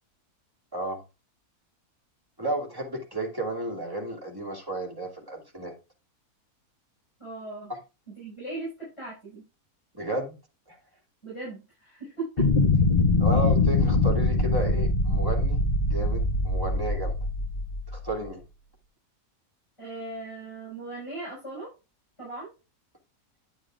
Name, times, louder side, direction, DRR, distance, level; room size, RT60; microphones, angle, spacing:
voice 1, 2.4-5.7 9.9-10.4 10.7-10.8 13.2-15.6 15.9-17.2 17.9-18.4, right 1 dB, 15° right, -2 dB, 2.6 m, -32 dB
voice 2, 7.2-7.7 8.1-9.4 11.2-12.5 19.8-21.7 22.2-22.5, right 3 dB, 20° left, -6 dB, 6.1 m, -38 dB
sound 1, 12.4-18.1, left 3 dB, 40° left, 0.6 m, -23 dB
10.0 x 8.8 x 2.5 m, 0.29 s
omnidirectional pair, 1.6 m